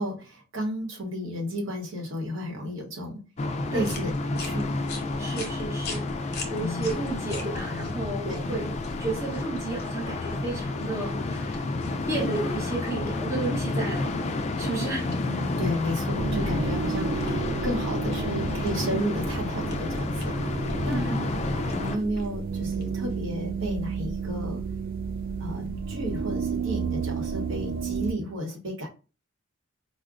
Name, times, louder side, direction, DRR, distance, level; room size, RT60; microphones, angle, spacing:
voice 1, 0.0-3.2 3.7-4.8 6.6-7.0 8.2-8.6 15.0-21.2 21.5-24.6 25.4-28.9, equal, 65° right, 0.9 m, -33 dB
sound 1, 3.4-22.0, left 2 dB, 35° left, 0.3 m, -30 dB
sound 2, 3.8-23.4, left 2 dB, 50° left, 0.7 m, -44 dB
voice 2, 5.2-8.7 9.0-11.7 12.1-14.2 14.6-15.1 20.8-21.4, right 3 dB, 15° right, 0.8 m, -32 dB
sound 3, 16.2-28.1, right 5 dB, 45° right, 0.3 m, -32 dB
4.7 x 2.1 x 2.4 m
head